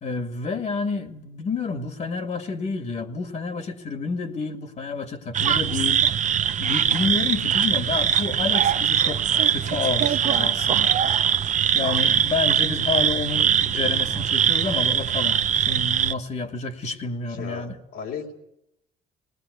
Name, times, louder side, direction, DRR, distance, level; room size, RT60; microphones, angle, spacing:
voice 1, 0.0-6.2 6.6-11.0 11.7-17.8, left 4 dB, 45° left, 2.0 m, -29 dB
sound 1, 5.3-16.1, right 9 dB, 45° right, 0.9 m, -22 dB
voice 2, 17.3-18.3, left 7 dB, 85° left, 3.9 m, -35 dB
20.0 x 19.5 x 9.5 m
cardioid pair, 110°, 17 cm